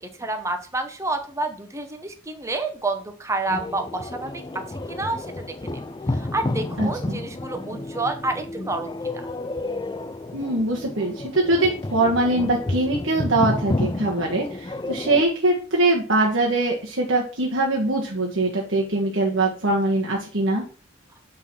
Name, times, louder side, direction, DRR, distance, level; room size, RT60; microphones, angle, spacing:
voice 1, 0.0-5.8 6.1-9.3, right 2 dB, 15° right, 6 dB, 0.9 m, -29 dB
sound 1, 3.5-15.2, left 2 dB, 20° left, 0.4 m, -30 dB
voice 2, 6.8-7.2 10.3-20.6, right 2 dB, 75° right, -1 dB, 1.4 m, -22 dB
9.0 x 3.9 x 6.0 m, 0.39 s
head